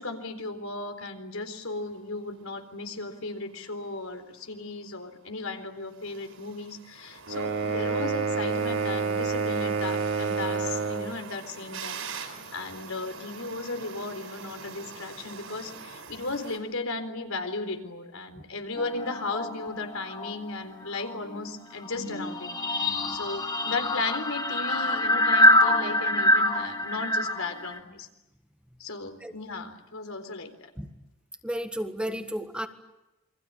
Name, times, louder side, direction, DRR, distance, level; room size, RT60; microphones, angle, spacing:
voice 1, 0.0-28.1 28.8-30.7, left 3 dB, 85° left, 6 dB, 4.0 m, -36 dB
sound 1, 1.5-16.6, right 5 dB, 70° right, 7.0 m, -45 dB
sound 2, 7.3-11.1, right 5 dB, 90° right, 3.8 m, -28 dB
sound 3, 18.8-20.5 20.8-27.8, left 1 dB, 20° left, 2.6 m, -25 dB
voice 2, 31.4-32.7, equal, 5° right, 6 dB, 1.7 m, -32 dB
28.5 x 24.0 x 8.7 m, 0.94 s
head